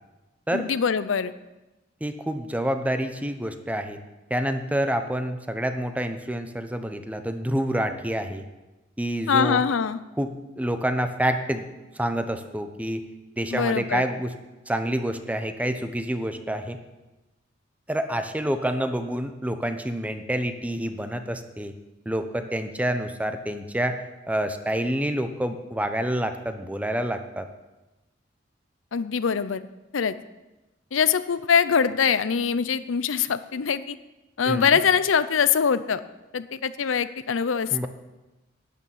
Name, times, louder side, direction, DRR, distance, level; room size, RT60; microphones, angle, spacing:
voice 1, 0.5-1.3 9.3-10.0 13.5-14.0 28.9-29.7 29.9-30.2 30.9-34.0 34.4-36.0 36.3-37.9, left 6 dB, 85° left, 14 dB, 0.6 m, -23 dB
voice 2, 2.0-4.0 4.3-8.4 9.0-9.6 10.2-10.3 10.6-11.7 11.9-13.0 13.4-14.3 14.7-16.8 17.9-21.7 22.1-24.0 24.3-27.5 34.4-34.8 37.7-37.9, right 1 dB, 10° right, 8 dB, 0.8 m, -27 dB
11.5 x 6.6 x 9.3 m, 1.0 s
head